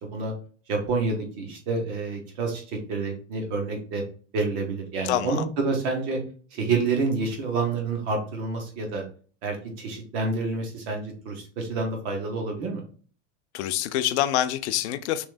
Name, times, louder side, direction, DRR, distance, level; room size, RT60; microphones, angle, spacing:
voice 1, 0.7-4.0 4.3-6.2 6.5-9.0 9.4-12.8, right 3 dB, 15° right, 2 dB, 0.3 m, -28 dB
voice 2, 5.0-5.5 13.5-15.3, left 12 dB, 65° left, 11 dB, 0.5 m, -26 dB
6.1 x 3.2 x 2.2 m, 0.41 s
supercardioid pair, 180°, 37 cm